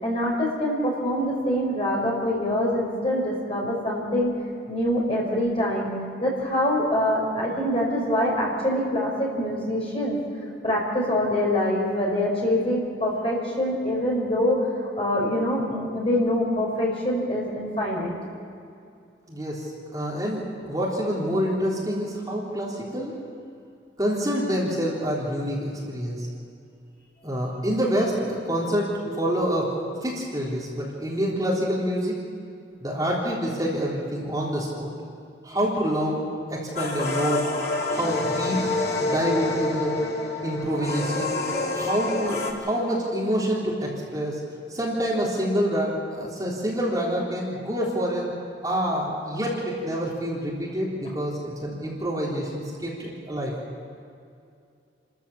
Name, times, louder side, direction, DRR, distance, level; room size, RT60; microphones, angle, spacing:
voice 1, 0.0-4.3 4.7-5.9 6.2-10.2 10.6-14.6 15.0-18.1, left 1 dB, 30° left, -3 dB, 5.4 m, -24 dB
voice 2, 19.3-23.2 24.0-26.3 27.2-32.2 32.8-34.9 35.4-37.5 37.9-38.7 39.0-40.1 40.4-41.4 41.7-44.4 44.7-48.3 48.6-53.5, equal, 20° right, -5 dB, 3.7 m, -27 dB
sound 1, 36.8-42.5, left 2 dB, 60° left, 3.1 m, -27 dB
29.5 x 14.0 x 7.3 m, 2.4 s
head